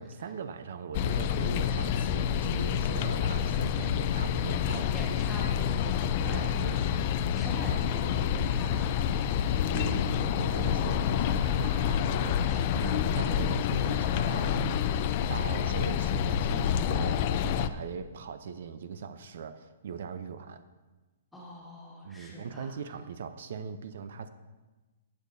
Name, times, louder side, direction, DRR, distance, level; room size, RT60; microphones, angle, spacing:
voice 1, 0.0-5.1 6.3-6.8 9.7-14.7 15.3-20.6 22.0-24.3, right 6 dB, 60° right, 11 dB, 0.5 m, -40 dB
sound 1, 0.9-17.7, left 8 dB, 35° left, 0.3 m, -28 dB
sound 2, 3.8-11.5 12.0-12.2 12.5-12.9 13.2-18.8, right 2 dB, 40° right, 1.9 m, -51 dB
voice 2, 4.9-7.1 7.3-9.1 12.4-12.9 21.3-22.8, left 1 dB, 5° left, -6 dB, 1.9 m, -43 dB
15.0 x 8.2 x 2.6 m, 1.2 s
hypercardioid pair, 165°, 0 cm